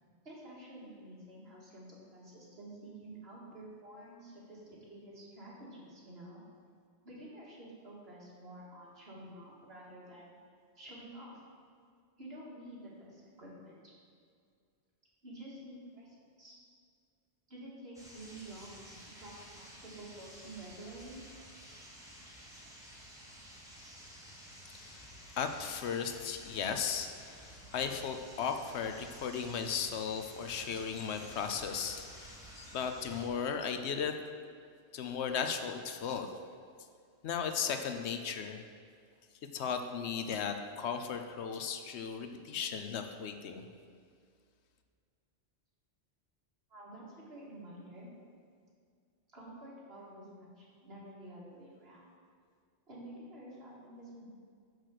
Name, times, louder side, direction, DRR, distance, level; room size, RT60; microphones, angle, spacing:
voice 1, 0.2-6.4 7.0-10.4 10.8-11.3 12.2-13.9 15.2-16.6 17.5-21.2 46.7-48.1 49.3-52.1 52.9-54.3, right 1 dB, 65° right, -6 dB, 2.3 m, -50 dB
sound 1, 17.9-33.3, equal, 5° right, 1.5 m, -52 dB
voice 2, 24.6-34.1 34.9-36.3 37.2-38.6 39.5-43.6, left 6 dB, 75° left, 6 dB, 0.9 m, -36 dB
6.4 x 6.0 x 6.5 m, 2.2 s
omnidirectional pair, 1.1 m